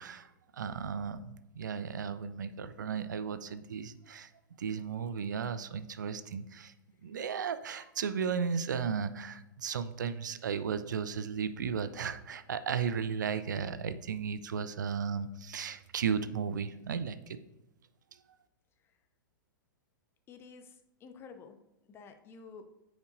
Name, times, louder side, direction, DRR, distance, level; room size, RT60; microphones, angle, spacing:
voice 1, 0.0-4.3 4.6-6.7 7.0-17.4, right 6 dB, 60° right, 12 dB, 0.4 m, -35 dB
voice 2, 20.3-22.6, left 5 dB, 20° left, 8 dB, 0.6 m, -51 dB
9.2 x 5.1 x 2.5 m, 0.97 s
figure-of-eight pair, 100°, 11 cm